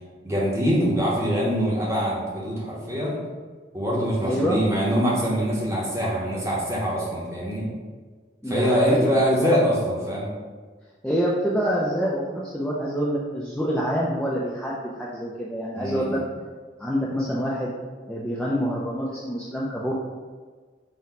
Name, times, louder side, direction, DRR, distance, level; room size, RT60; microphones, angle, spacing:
voice 1, 0.2-3.2 3.7-7.6 8.5-10.3 15.7-16.2, equal, 15° right, -6 dB, 0.8 m, -24 dB
voice 2, 4.2-4.6 8.4-9.5 11.0-16.2 16.8-17.7 18.1-19.9, equal, 5° left, -6 dB, 0.3 m, -26 dB
4.0 x 2.1 x 4.1 m, 1.5 s
head